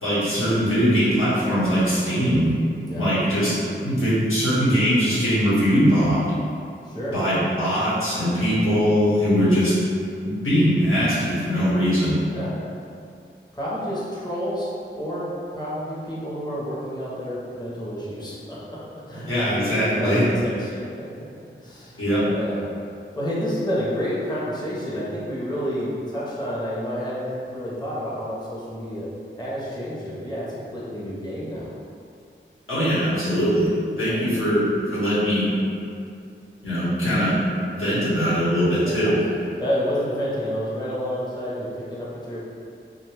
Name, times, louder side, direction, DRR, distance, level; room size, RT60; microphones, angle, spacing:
voice 1, 0.0-2.5 2.9-3.5 3.8-6.3 7.1-9.8 10.2-12.2 19.3-20.2 22.0-22.3 32.7-33.7 34.0-35.5 36.6-37.4 37.7-39.1, equal, 85° left, -11 dB, 1.1 m, -21 dB
voice 2, 6.8-7.1 12.3-12.5 13.5-14.7 14.9-18.8 19.1-21.0 21.6-22.6 23.2-29.1 29.4-31.7 34.0-34.2 39.3-42.4, equal, 20° left, -8 dB, 0.6 m, -29 dB
2.6 x 2.2 x 3.1 m, 2.5 s
wide cardioid pair, 60°, 21 cm